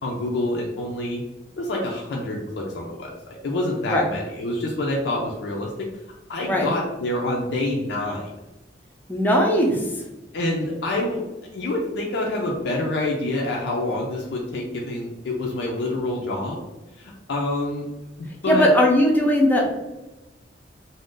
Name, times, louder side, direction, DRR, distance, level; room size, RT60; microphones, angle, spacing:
voice 1, 0.0-1.2 1.6-5.9 6.3-8.3 10.3-11.2 11.5-16.6 17.0-17.9 18.2-18.7, left 2 dB, 75° left, -2 dB, 0.4 m, -27 dB
voice 2, 9.1-9.9 18.5-19.7, equal, 10° left, -1 dB, 0.5 m, -18 dB
2.5 x 2.1 x 3.6 m, 1.0 s
head